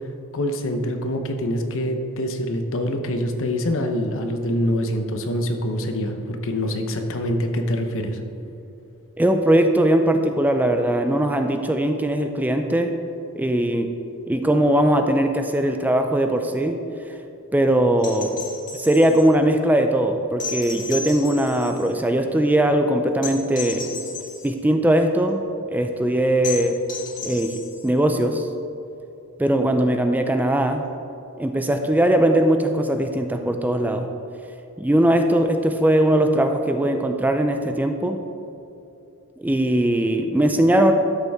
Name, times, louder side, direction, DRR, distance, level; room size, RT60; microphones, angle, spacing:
voice 1, 0.3-8.2, equal, 60° left, 5 dB, 0.9 m, -25 dB
voice 2, 9.2-13.0 13.4-13.9 14.3-16.8 17.5-18.3 18.7-23.9 24.4-25.4 25.7-26.8 27.2-28.5 29.4-30.8 31.4-34.1 34.8-38.2 39.4-40.9, right 1 dB, 5° right, 6 dB, 0.4 m, -20 dB
sound 1, 18.0-19.3 20.4-21.9 23.2-24.5 26.4-27.9 29.7-29.8, left 4 dB, 35° left, 2.1 m, -34 dB
12.5 x 6.7 x 3.6 m, 2.7 s
head